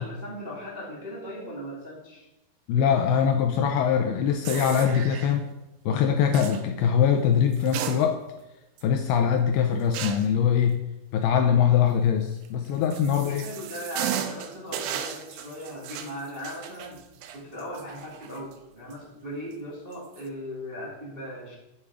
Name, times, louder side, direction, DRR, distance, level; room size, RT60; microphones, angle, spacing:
voice 1, 0.0-2.3 13.1-17.0 17.3-21.5, equal, 25° right, -6 dB, 1.3 m, -38 dB
voice 2, 2.7-5.5 5.9-8.2 8.8-10.8 11.1-13.4, left 8 dB, 80° left, 5 dB, 2.3 m, -22 dB
sound 1, 4.4-5.4 6.3-6.6 7.5-8.4 8.8-8.9 9.9-10.4 12.4-18.5 18.9-19.0 19.9-20.2, right 9 dB, 90° right, 2.9 m, -35 dB
9.9 x 6.8 x 4.9 m, 0.96 s
omnidirectional pair, 5.0 m